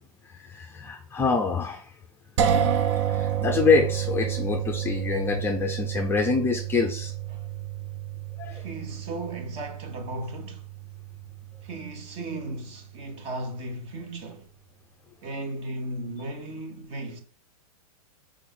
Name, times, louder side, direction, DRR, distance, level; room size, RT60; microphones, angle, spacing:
voice 1, 0.3-1.9 3.0-7.1 8.4-8.7, left 4 dB, 10° left, 0.6 m, -26 dB
sound 1, 2.4-12.1, right 9 dB, 50° right, 0.9 m, -30 dB
voice 2, 8.5-10.6 11.6-14.5 15.2-17.2, right 2 dB, 30° right, 1.6 m, -36 dB
6.7 x 5.2 x 3.8 m
hypercardioid pair, 140°, 19 cm